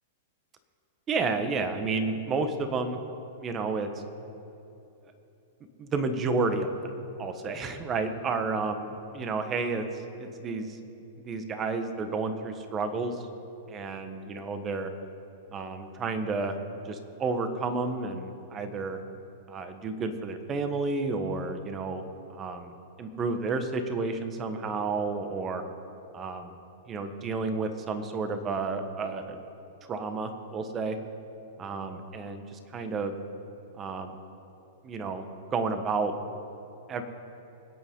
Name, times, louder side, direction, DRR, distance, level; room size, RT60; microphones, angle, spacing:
voice 1, 1.1-3.0 3.4-3.9 5.8-6.9 7.2-8.9 9.1-9.8 10.2-10.8 11.2-13.2 13.7-14.9 15.5-16.5 16.8-19.0 19.5-22.0 22.3-22.7 23.0-25.6 26.1-26.6 26.9-29.4 29.9-31.0 31.6-33.2 33.8-34.2 34.8-35.2 35.5-36.1 36.9-37.0, right 4 dB, 25° right, 7 dB, 1.4 m, -31 dB
25.0 x 8.4 x 3.9 m, 2.8 s
hypercardioid pair, 120°, 0 cm